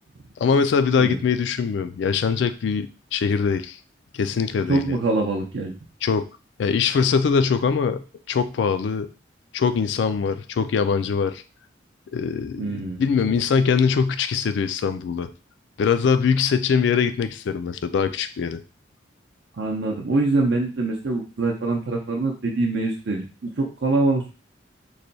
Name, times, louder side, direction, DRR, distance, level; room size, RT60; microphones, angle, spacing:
voice 1, 0.4-3.8 4.1-4.9 6.0-6.2 6.6-8.0 8.3-9.1 9.5-11.4 12.1-15.3 15.8-18.6, left 6 dB, 65° left, 11 dB, 0.3 m, -22 dB
voice 2, 4.7-5.7 12.6-13.0 19.6-24.3, right 2 dB, 60° right, -2 dB, 0.6 m, -24 dB
3.1 x 2.2 x 3.9 m, 0.34 s
head